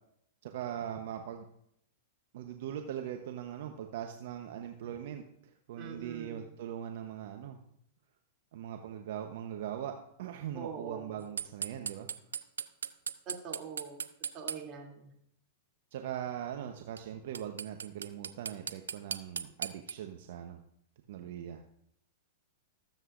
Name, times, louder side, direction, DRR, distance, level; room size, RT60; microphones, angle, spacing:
voice 1, 0.4-1.5 2.3-7.6 8.5-9.9 10.2-12.1 15.9-20.6 21.1-21.6, right 10 dB, 65° right, 5 dB, 0.9 m, -41 dB
voice 2, 5.7-6.5 10.5-11.2 13.3-14.0 14.3-15.1, right 6 dB, 35° right, 1 dB, 2.7 m, -43 dB
sound 1, 11.4-14.6 17.0-17.1 17.3-19.9, right 7 dB, 90° right, 0.5 m, -36 dB
20.0 x 7.8 x 2.5 m, 0.72 s
hypercardioid pair, 110°, 0 cm